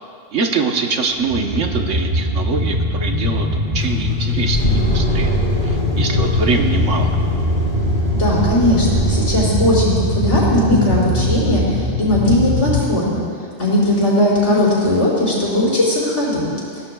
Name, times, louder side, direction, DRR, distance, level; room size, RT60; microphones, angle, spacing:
voice 1, 0.3-5.3 5.6-7.2, right 4 dB, 85° right, 3 dB, 1.4 m, -23 dB
sound 1, 1.2-12.8, equal, 50° right, 1.6 m, -21 dB
sound 2, 3.8-9.4, equal, 45° left, 4.4 m, -22 dB
voice 2, 8.1-13.2 13.6-16.4, left 1 dB, 75° left, -10 dB, 5.1 m, -18 dB
23.0 x 16.5 x 2.3 m, 2.2 s
omnidirectional pair, 1.2 m